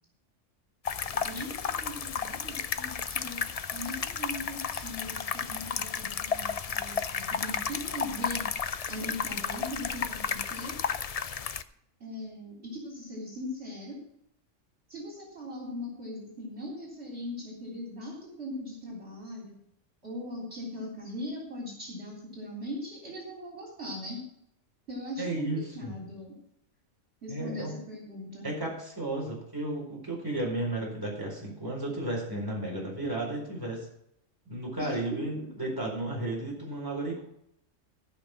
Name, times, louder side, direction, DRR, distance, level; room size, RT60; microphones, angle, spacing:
sound 1, 0.9-11.6, left 6 dB, 50° left, 0.4 m, -33 dB
voice 1, 1.1-3.5 3.7-8.4 8.9-10.8 12.0-14.0 14.9-19.6 20.0-24.3 24.9-26.3 27.2-28.5 34.8-35.2, left 1 dB, 55° right, -2 dB, 3.9 m, -40 dB
voice 2, 25.2-26.0 27.3-27.7 28.4-33.9 34.5-37.2, right 2 dB, 15° right, -3 dB, 4.4 m, -33 dB
15.0 x 6.0 x 5.9 m, 0.74 s
omnidirectional pair, 1.3 m